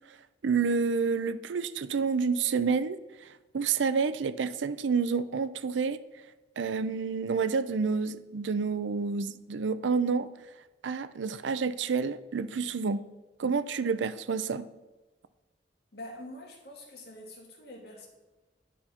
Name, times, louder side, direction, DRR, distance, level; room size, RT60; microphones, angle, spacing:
voice 1, 0.4-3.0 3.5-6.0 6.6-10.3 10.8-13.1 13.4-14.7, right 5 dB, 85° right, 14 dB, 0.5 m, -29 dB
voice 2, 15.9-18.1, left 1 dB, 60° left, 0 dB, 1.9 m, -45 dB
9.9 x 4.4 x 5.6 m, 1.2 s
head